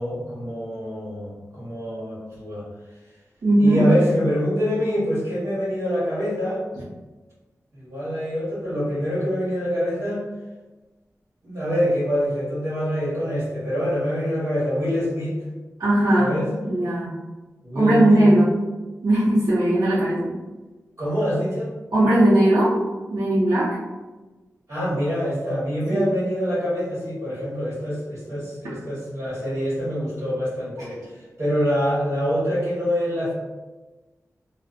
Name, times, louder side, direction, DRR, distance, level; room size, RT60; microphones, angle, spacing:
voice 1, 0.0-2.7 3.6-6.6 7.7-10.2 11.4-15.3 16.2-16.5 17.6-18.2 21.0-21.7 24.7-31.0 31.4-33.3, equal, 60° right, -10 dB, 1.1 m, -25 dB
voice 2, 3.4-3.8 15.8-17.1 17.7-18.6 19.0-20.3 21.9-22.7 23.1-23.8 25.9-26.1, right 1 dB, 80° right, -11 dB, 0.6 m, -18 dB
2.6 x 2.1 x 2.5 m, 1.2 s
wide cardioid pair, 105°, 6 cm